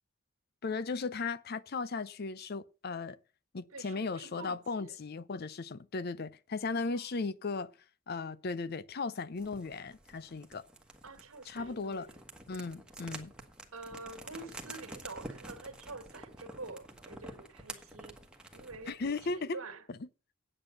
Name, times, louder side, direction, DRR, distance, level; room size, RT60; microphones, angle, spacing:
voice 1, 0.6-3.2 3.5-7.7 8.1-10.7 11.5-12.1 12.5-13.3 18.9-19.6 19.9-20.0, left 4 dB, 45° left, 0.5 m, -36 dB
voice 2, 3.7-5.0 6.7-7.1 11.0-12.2 13.7-18.2 18.5-19.9, right 3 dB, 85° right, 1.8 m, -47 dB
sound 1, 9.4-19.4, right 1 dB, 5° right, 1.3 m, -49 dB
8.8 x 8.7 x 6.4 m
head